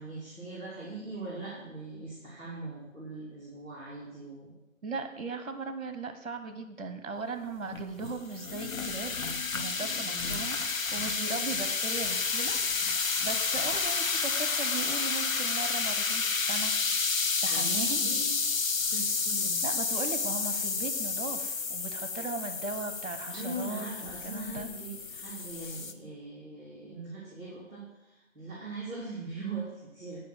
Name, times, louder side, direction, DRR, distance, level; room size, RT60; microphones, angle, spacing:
voice 1, 0.0-4.5 10.0-10.5 17.5-18.3 18.8-19.6 23.3-30.3, right 3 dB, 10° right, -13 dB, 2.1 m, -41 dB
voice 2, 4.8-9.2 9.5-12.6 12.9-16.8 17.4-18.1 19.6-24.7, right 3 dB, 65° right, 8 dB, 1.1 m, -38 dB
sound 1, 7.7-25.9, left 5 dB, 75° left, 1.0 m, -30 dB
9.6 x 5.4 x 7.9 m, 0.97 s
figure-of-eight pair, 170°, 40 cm